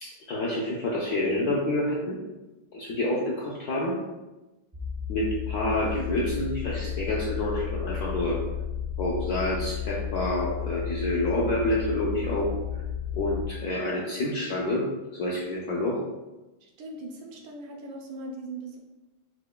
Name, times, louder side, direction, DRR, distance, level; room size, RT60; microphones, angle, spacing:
voice 1, 0.0-2.2 2.7-4.0 5.1-8.4 9.0-12.5 13.1-16.0, left 1 dB, 75° left, -5 dB, 0.9 m, -28 dB
sound 1, 4.7-13.4, left 9 dB, 30° right, 0.4 m, -33 dB
voice 2, 16.6-18.8, right 2 dB, 75° right, 1 dB, 1.3 m, -40 dB
6.3 x 2.2 x 2.2 m, 1.1 s
omnidirectional pair, 2.2 m